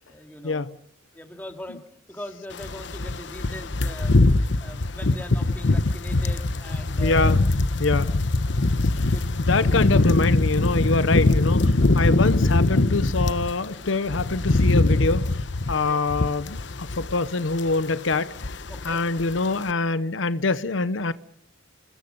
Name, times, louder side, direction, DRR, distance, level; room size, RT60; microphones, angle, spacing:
voice 1, 0.1-0.6 1.1-1.8 2.1-4.2 4.6-7.4 8.0-8.2 11.3-11.4 11.9-12.0 15.7-16.0 18.7-19.0, left 1 dB, 10° left, 2.5 m, -41 dB
sound 1, 2.6-13.5 13.9-17.3 17.5-17.8 18.1-18.9 19.2-19.4, left 2 dB, 65° left, 1.0 m, -22 dB
voice 2, 7.0-7.4 7.8-8.1 9.0-9.1 9.4-15.4 15.7-18.6 18.8-21.1, left 3 dB, 85° left, 0.9 m, -25 dB
30.0 x 20.5 x 5.4 m
head